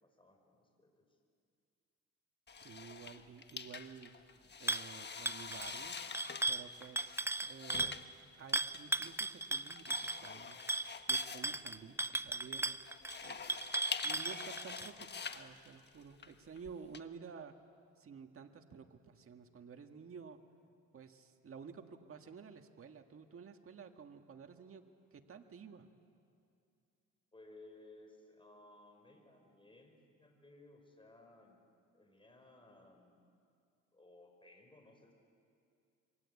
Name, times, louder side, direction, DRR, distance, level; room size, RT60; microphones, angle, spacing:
voice 1, 0.0-1.2 4.3-4.6 11.5-11.7 27.3-31.6 31.9-33.2 33.9-35.1, left 2 dB, 15° left, 3 dB, 5.9 m, -60 dB
sound 1, 2.5-17.0, left 5 dB, 35° left, 1.4 m, -47 dB
voice 2, 2.6-4.1 4.6-6.0 6.5-8.0 8.4-10.6 11.1-12.8 13.2-13.8 14.0-17.6 18.0-20.4 20.9-24.8 25.1-25.9, right 6 dB, 45° right, 5 dB, 1.8 m, -52 dB
sound 2, 4.7-4.9 5.3-8.0 8.5-14.9, right 2 dB, 10° right, 0.7 m, -36 dB
27.5 x 24.0 x 8.4 m, 2.4 s
cardioid pair, 90°, 30 cm